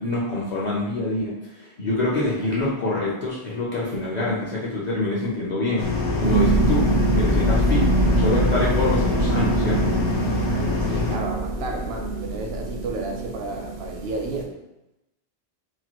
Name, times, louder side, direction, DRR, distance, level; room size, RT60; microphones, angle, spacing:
voice 1, 0.0-5.8 6.2-6.9 7.2-9.9 10.2-10.3, left 2 dB, 50° left, -7 dB, 0.6 m, -26 dB
sound 1, 5.8-11.2, left 3 dB, 85° left, 0.9 m, -25 dB
sound 2, 6.2-14.4, right 2 dB, 55° right, 0.4 m, -24 dB
voice 2, 10.8-14.5, right 2 dB, 70° right, 1 dB, 0.8 m, -32 dB
2.9 x 2.3 x 2.9 m, 0.93 s
omnidirectional pair, 1.1 m